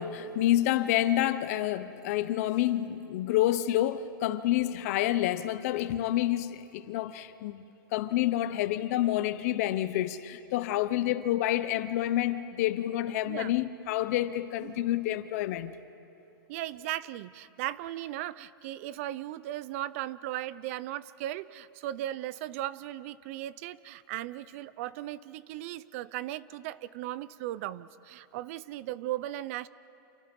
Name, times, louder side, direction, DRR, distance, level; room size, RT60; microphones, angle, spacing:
voice 1, 0.0-7.6 7.9-15.8, left 13 dB, 45° left, 0.9 m, -28 dB
voice 2, 16.5-29.7, right 14 dB, 40° right, 0.5 m, -37 dB
30.0 x 28.0 x 5.3 m
supercardioid pair, 165°, 12 cm